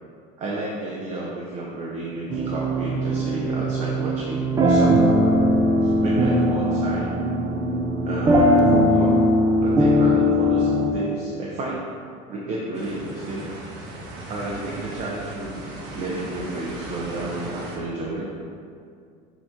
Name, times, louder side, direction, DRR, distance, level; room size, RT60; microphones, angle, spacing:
voice 1, 0.4-5.4 5.8-7.2 8.0-9.1 9.6-11.8 12.3-13.5 14.3-18.4, right 2 dB, 40° right, -4 dB, 0.8 m, -31 dB
sound 1, 2.3-10.9, equal, 20° right, 0.4 m, -20 dB
sound 2, 12.7-17.8, right 1 dB, 65° right, 1.2 m, -37 dB
6.8 x 3.0 x 5.0 m, 2.3 s
cardioid pair, 155°, 20 cm